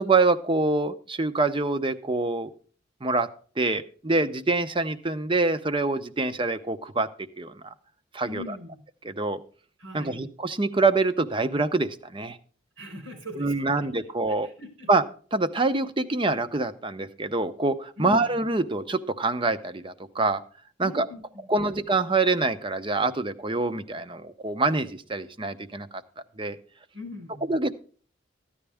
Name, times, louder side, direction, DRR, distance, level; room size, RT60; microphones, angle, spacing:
voice 1, 0.0-2.5 3.0-3.3 3.6-7.1 7.4-7.5 8.1-8.5 9.0-9.4 9.9-12.4 13.4-14.5 14.9-15.0 15.3-20.4 20.8-21.1 21.5-25.9 26.4-26.6 27.5-27.7, right 3 dB, 25° right, 11 dB, 0.8 m, -25 dB
voice 2, 8.2-8.8 9.8-10.2 12.8-14.1 14.4-14.9 18.0-18.4 20.8-21.8 26.9-27.5, left 2 dB, 90° right, 4 dB, 4.8 m, -41 dB
14.0 x 10.0 x 3.5 m, 0.42 s
head